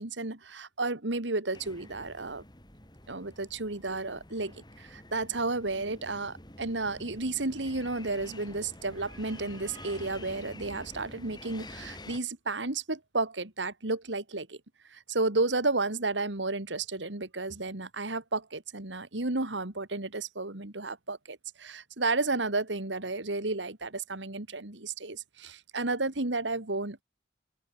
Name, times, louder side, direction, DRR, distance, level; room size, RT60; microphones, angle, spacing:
voice 1, 0.0-2.4 3.1-14.6 14.9-27.0, right 3 dB, 80° right, 2.4 m, -32 dB
sound 1, 1.5-12.2, left 1 dB, 25° left, 5.1 m, -48 dB
open air
head